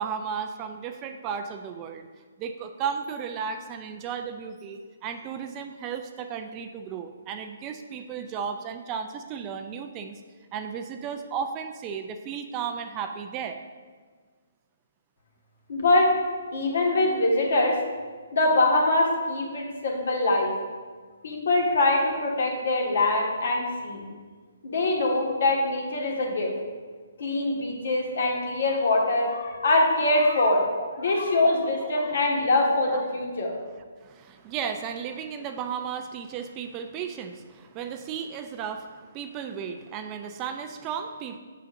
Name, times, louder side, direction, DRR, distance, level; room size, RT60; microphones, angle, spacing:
voice 1, 0.0-2.1 2.4-10.2 10.5-13.6 30.8-30.9 31.4-32.2 32.9-33.0 34.0-41.4, right 7 dB, 20° right, 7 dB, 0.3 m, -34 dB
voice 2, 15.7-16.1 16.5-17.8 18.3-20.5 21.2-24.0 24.6-26.5 27.2-30.6 30.9-33.6, left 2 dB, 65° left, 0 dB, 1.6 m, -23 dB
7.8 x 6.7 x 2.6 m, 1.5 s
hypercardioid pair, 160°, 0 cm